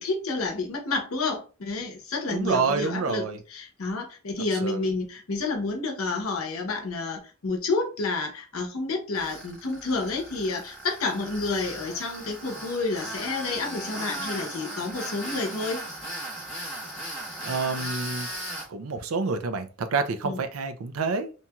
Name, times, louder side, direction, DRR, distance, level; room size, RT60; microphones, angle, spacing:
voice 1, 0.0-15.8 20.2-20.4, left 3 dB, 85° left, 0.7 m, -30 dB
voice 2, 2.3-3.4 4.6-4.9 17.4-18.3 18.7-21.3, right 4 dB, 85° right, 0.4 m, -28 dB
Tools, 9.1-18.7, right 1 dB, 5° left, 1.1 m, -37 dB
2.8 x 2.6 x 2.3 m
head